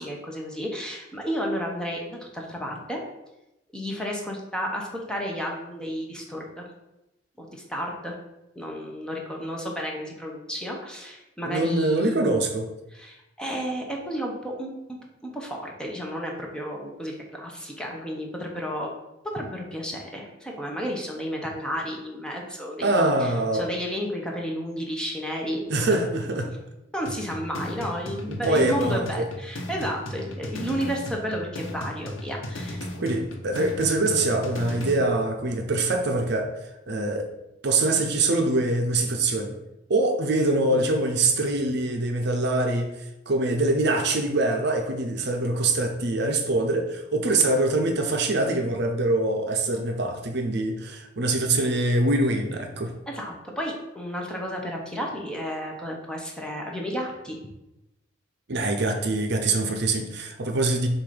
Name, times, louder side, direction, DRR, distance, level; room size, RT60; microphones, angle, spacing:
voice 1, 0.0-3.0 3.7-6.7 7.4-8.1 8.6-12.2 12.9-14.7 15.2-18.9 19.3-25.7 26.1-26.2 26.9-32.8 53.1-57.4, equal, 5° left, -1 dB, 0.9 m, -32 dB
voice 2, 11.4-12.7 22.8-23.7 25.7-26.5 28.3-29.3 33.0-36.5 36.9-37.3 37.6-39.6 39.9-42.9 43.3-52.9 58.5-60.9, right 2 dB, 60° right, 4 dB, 0.7 m, -24 dB
sound 1, 27.1-35.1, left 1 dB, 85° left, 1.0 m, -36 dB
7.1 x 2.6 x 5.1 m, 0.93 s
head